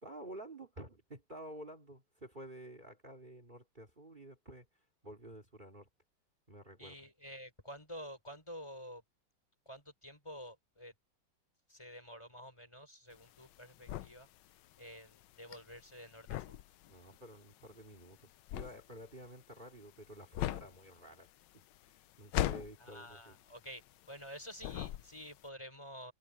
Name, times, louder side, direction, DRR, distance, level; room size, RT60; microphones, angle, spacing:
voice 1, 0.0-4.7 5.0-5.9 6.5-7.0 16.9-23.4, right 1 dB, 20° right, 2.7 m, -51 dB
voice 2, 6.8-9.0 9.7-10.9 11.7-14.3 14.8-16.6 22.8-26.1, equal, 10° left, 4.2 m, -50 dB
sound 1, 13.1-24.3 24.6-25.4, left 13 dB, 70° left, 1.1 m, -40 dB
omnidirectional pair, 2.4 m